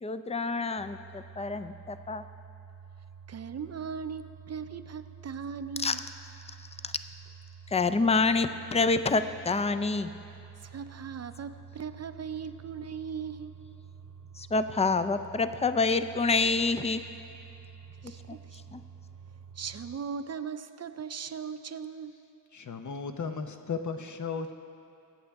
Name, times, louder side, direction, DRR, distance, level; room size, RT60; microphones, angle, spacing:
voice 1, 0.0-2.2 5.8-6.0 6.6-6.9 7.7-10.1 14.3-17.0 18.3-18.4 18.7-18.8, left 4 dB, 20° left, 11 dB, 0.4 m, -27 dB
sound 1, 0.8-20.0, right 6 dB, 80° right, 0.9 m, -49 dB
voice 2, 3.3-6.0 10.6-13.6 18.0-18.6 19.6-22.1, right 6 dB, 50° right, 11 dB, 0.5 m, -38 dB
voice 3, 22.5-24.5, left 5 dB, 65° left, 6 dB, 0.8 m, -35 dB
22.5 x 8.6 x 3.5 m, 2.8 s
wide cardioid pair, 110°, 32 cm